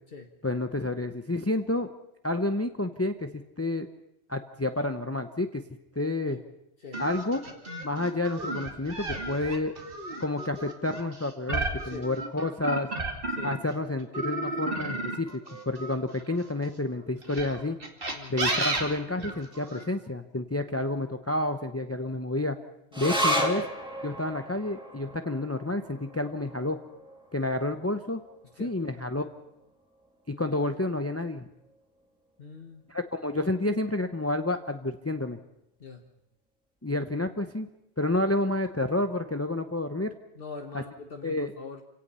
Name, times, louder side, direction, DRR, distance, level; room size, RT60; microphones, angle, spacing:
voice 1, 0.4-1.9 2.2-3.9 4.3-5.6 5.9-6.4 7.0-7.4 7.8-9.7 10.2-12.9 13.4-15.4 15.7-17.8 18.3-22.6 23.0-23.6 24.0-26.8 27.3-28.2 28.6-29.2 30.3-31.4 32.9-35.4 36.8-37.7 38.0-40.1 40.7-40.8 41.2-41.5, left 2 dB, 15° left, 7 dB, 0.8 m, -29 dB
sound 1, 6.9-13.7 14.1-16.5 17.2-19.8, right 2 dB, 55° right, 2.6 m, -33 dB
sound 2, 22.9-29.7 30.0-30.1 30.5-31.1 31.7-31.8, equal, 5° right, 2.9 m, -34 dB
voice 2, 32.4-32.8 35.8-36.0 40.3-41.8, left 4 dB, 60° left, 3 dB, 1.5 m, -43 dB
28.0 x 17.5 x 5.6 m, 0.84 s
omnidirectional pair, 1.1 m